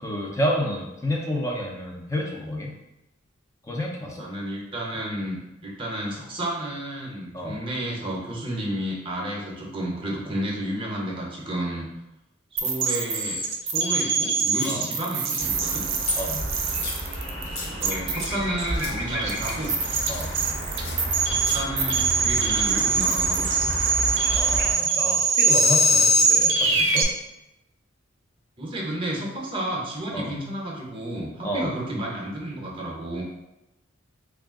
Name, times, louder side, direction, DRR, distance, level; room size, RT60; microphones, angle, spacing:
voice 1, 0.0-2.7 3.6-4.3 7.3-7.6 14.6-14.9 16.1-16.5 20.1-20.3 24.3-27.1 30.1-30.3 31.4-31.7, equal, 15° left, -2 dB, 0.5 m, -30 dB
voice 2, 4.2-11.9 12.5-15.8 17.6-19.8 21.3-23.8 28.6-33.2, right 1 dB, 25° right, -2 dB, 0.7 m, -31 dB
sound 1, 12.6-27.0, right 3 dB, 65° right, 0.5 m, -23 dB
sound 2, 14.5-14.8 15.2-15.5 15.9-16.2 16.7-17.7 18.2-18.3 18.7-19.0 19.3-20.4 20.7-21.6, left 2 dB, 75° left, 0.8 m, -35 dB
sound 3, 15.4-24.7, right 1 dB, 40° left, 1.1 m, -32 dB
3.6 x 2.4 x 3.6 m, 0.91 s
head